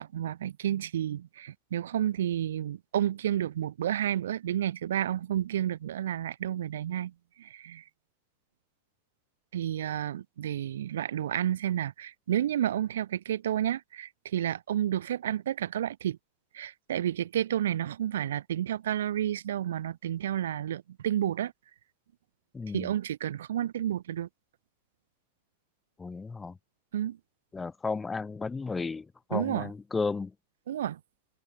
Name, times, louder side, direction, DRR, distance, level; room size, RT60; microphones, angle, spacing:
voice 1, 0.0-7.1 7.4-7.8 9.5-16.2 16.5-21.5 22.7-24.3 26.9-27.2 29.3-29.7 30.7-31.0, right 11 dB, 60° right, 5.0 m, -31 dB
voice 2, 22.5-22.9 26.0-26.6 27.5-30.3, left 4 dB, 15° left, 3.6 m, -33 dB
figure-of-eight pair, 90°, 0 cm